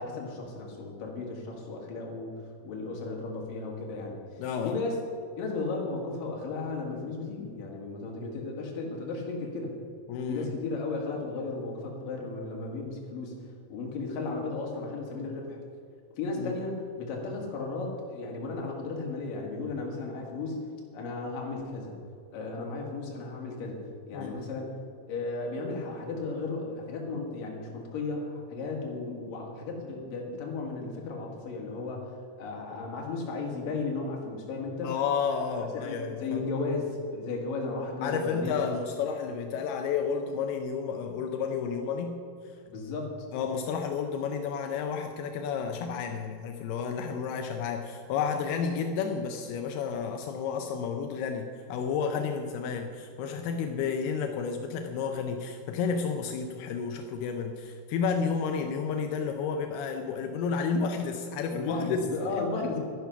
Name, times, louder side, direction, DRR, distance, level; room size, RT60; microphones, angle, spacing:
voice 1, 0.0-4.2 4.6-5.0 5.4-9.7 10.3-15.6 16.1-20.6 20.9-22.0 22.3-24.7 25.1-35.0 35.6-38.6 42.7-43.3 61.5-62.8, left 3 dB, 55° left, -1 dB, 3.2 m, -35 dB
voice 2, 4.4-4.8 10.1-10.5 16.4-16.5 24.1-24.4 34.8-36.4 38.0-42.2 43.3-62.0 62.3-62.4, left 6 dB, 90° left, 4 dB, 2.2 m, -31 dB
13.0 x 10.5 x 5.8 m, 2.3 s
omnidirectional pair, 5.5 m